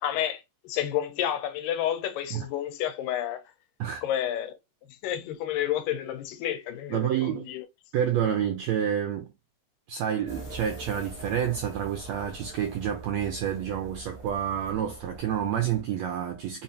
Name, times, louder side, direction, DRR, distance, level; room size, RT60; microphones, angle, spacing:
voice 1, 0.0-3.4 4.0-4.6 5.0-7.6, left 11 dB, 90° left, 2.3 m, -30 dB
voice 2, 6.9-7.5 7.9-9.3 9.9-16.6, right 9 dB, 85° right, 1.5 m, -29 dB
sound 1, 10.3-15.8, right 2 dB, 25° left, 1.0 m, -44 dB
5.4 x 2.5 x 2.6 m
omnidirectional pair, 3.9 m